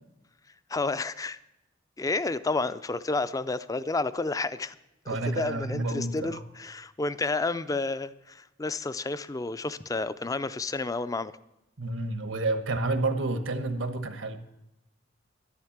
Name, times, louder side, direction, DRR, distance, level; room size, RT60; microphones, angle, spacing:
voice 1, 0.7-1.4 2.0-4.8 5.1-11.4, left 3 dB, 20° left, 15 dB, 0.4 m, -30 dB
voice 2, 5.1-6.4 11.8-14.4, right 2 dB, 80° right, 10 dB, 1.2 m, -30 dB
11.0 x 10.5 x 7.2 m, 0.91 s
head